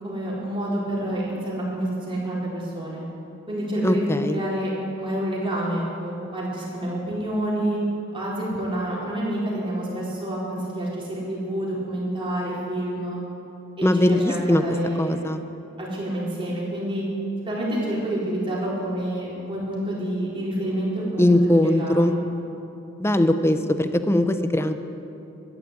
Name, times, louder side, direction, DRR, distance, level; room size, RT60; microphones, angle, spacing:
voice 1, 0.0-3.1 3.5-4.7 5.0-7.8 8.1-13.2 13.8-15.2 15.8-17.0 17.4-22.1, right 1 dB, 25° right, -6 dB, 4.3 m, -28 dB
voice 2, 3.8-4.4 13.8-14.6 15.0-15.4 21.2-22.1 23.0-24.7, left 1 dB, 10° left, 9 dB, 0.7 m, -20 dB
13.5 x 11.0 x 8.4 m, 2.8 s
head